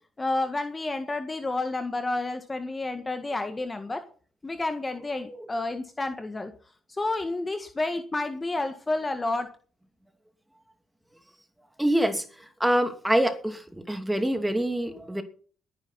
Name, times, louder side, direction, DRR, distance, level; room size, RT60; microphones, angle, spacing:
voice 1, 0.2-4.0 4.4-6.5 6.9-9.5, left 2 dB, 20° left, 7 dB, 1.7 m, -30 dB
voice 2, 11.8-12.2 12.6-15.2, right 1 dB, 5° right, 7 dB, 2.7 m, -25 dB
21.0 x 10.5 x 4.2 m, 0.43 s
cardioid pair, 90°, 0 cm